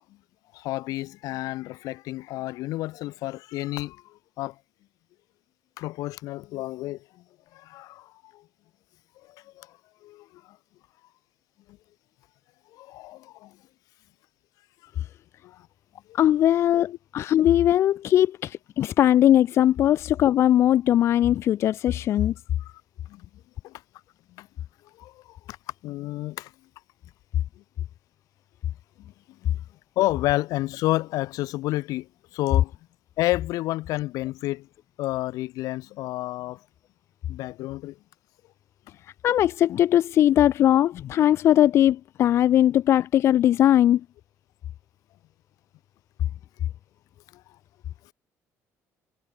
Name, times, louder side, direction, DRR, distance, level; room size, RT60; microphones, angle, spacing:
voice 1, 0.5-4.0 4.4-4.5 5.8-7.0 7.5-8.1 9.6-9.7 10.0-10.3 12.7-13.5 15.4-15.6 18.1-18.3 23.1-23.2 23.6-23.7 24.4-24.5 25.0-25.4 25.8-26.5 29.0-29.1 29.4-29.6 30.0-32.1 32.3-32.7 33.2-34.7 35.0-36.6 37.3-37.9, left 17 dB, 80° left, 7.6 m, -30 dB
voice 2, 16.1-18.3 18.8-22.3 39.2-44.0, left 11 dB, 45° left, 0.4 m, -19 dB
cardioid pair, 160°, 6 cm